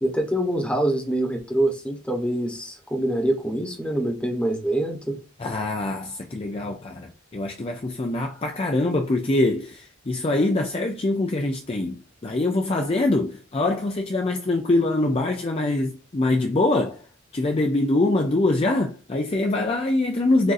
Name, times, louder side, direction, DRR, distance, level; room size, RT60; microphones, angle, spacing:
voice 1, 0.0-5.2, right 1 dB, 5° left, 0.9 m, -25 dB
voice 2, 5.4-12.0 12.2-17.0 17.3-20.5, left 2 dB, 25° left, 0.4 m, -24 dB
6.2 x 2.6 x 2.5 m
head